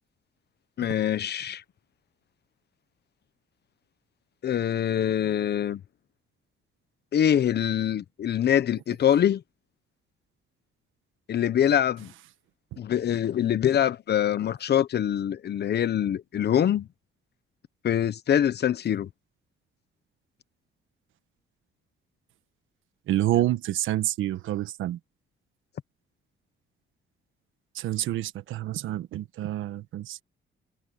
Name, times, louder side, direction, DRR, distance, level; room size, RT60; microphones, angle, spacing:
voice 1, 0.8-1.6 4.4-5.8 7.1-9.4 11.3-12.1 12.8-16.9 17.8-19.1 23.3-23.4, left 10 dB, 55° left, 1.1 m, -24 dB
voice 2, 23.1-25.0 27.7-30.2, right 13 dB, 85° right, 1.3 m, -28 dB
cardioid pair, 90°, 20 cm